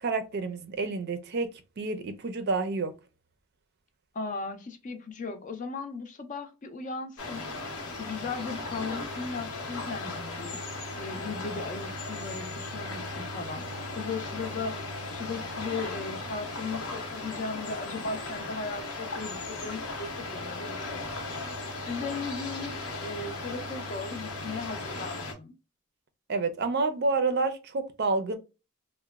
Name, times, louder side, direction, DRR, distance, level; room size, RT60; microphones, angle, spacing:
voice 1, 0.0-1.5 1.8-2.9 26.3-28.4, right 3 dB, 50° right, 0.4 m, -29 dB
voice 2, 4.1-7.5 8.0-10.6 10.9-21.4 21.9-25.6, left 4 dB, 35° left, 0.4 m, -37 dB
sound 1, 7.2-25.3, left 2 dB, 85° left, 0.9 m, -37 dB
2.9 x 2.1 x 2.3 m
head